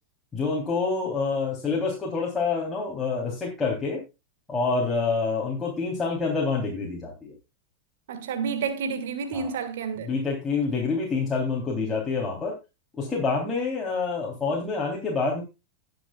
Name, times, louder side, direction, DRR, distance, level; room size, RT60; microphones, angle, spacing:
voice 1, 0.3-4.0 4.5-7.3 9.3-9.5 10.1-12.6 12.9-15.4, left 4 dB, 15° left, 3.4 m, -27 dB
voice 2, 8.1-10.1, right 6 dB, 55° right, 2.0 m, -30 dB
19.5 x 7.0 x 2.4 m
figure-of-eight pair, 90°, 0 cm